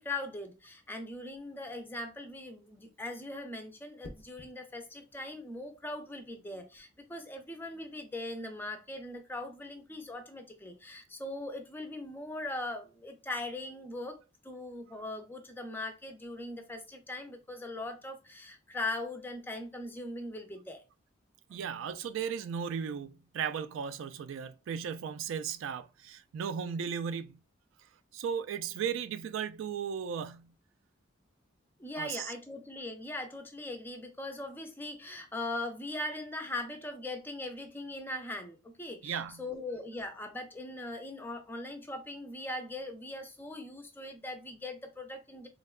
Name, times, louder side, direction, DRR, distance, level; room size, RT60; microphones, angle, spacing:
voice 1, 0.0-14.2 14.4-20.8 21.5-21.6 31.8-45.5, left 2 dB, 10° left, 0.4 m, -40 dB
sound 1, 1.2-1.6 4.0-4.6 6.5-6.8, left 2 dB, 70° left, 0.5 m, -50 dB
voice 2, 21.5-27.4 28.1-30.6 32.0-32.3 39.0-39.5, right 7 dB, 85° right, 0.3 m, -36 dB
3.6 x 2.2 x 2.3 m
head